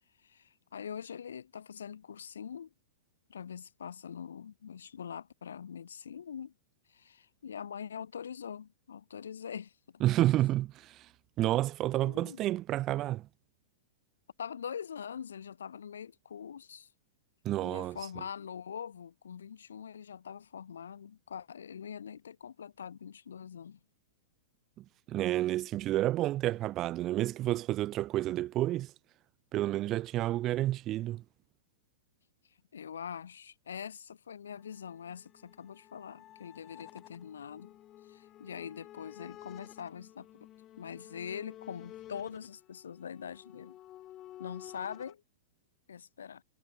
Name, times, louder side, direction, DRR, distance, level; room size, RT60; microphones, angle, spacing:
voice 1, 0.2-2.7 3.3-6.5 6.9-10.0 12.0-12.4 14.4-16.9 17.6-23.8 32.7-37.8 38.1-40.5 40.8-43.8 44.4-45.2 45.9-46.4, left 7 dB, 70° left, 1.2 m, -43 dB
voice 2, 10.0-11.0 11.4-13.3 17.4-18.0 25.1-28.9 29.5-31.2, right 14 dB, 30° right, 0.4 m, -30 dB
sound 1, 34.5-45.1, left 13 dB, 30° left, 1.4 m, -52 dB
figure-of-eight pair, 100°, 0 cm